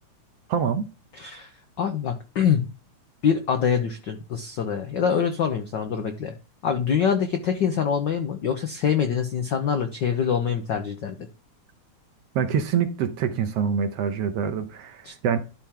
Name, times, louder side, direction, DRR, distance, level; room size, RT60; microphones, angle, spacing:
voice 1, 0.5-0.9 12.3-15.4, right 7 dB, 70° right, 1.6 m, -25 dB
voice 2, 1.1-1.5 1.8-2.7 3.2-6.3 6.6-11.2 15.0-15.1, left 7 dB, 90° left, 0.9 m, -25 dB
12.0 x 4.4 x 3.7 m
omnidirectional pair, 3.3 m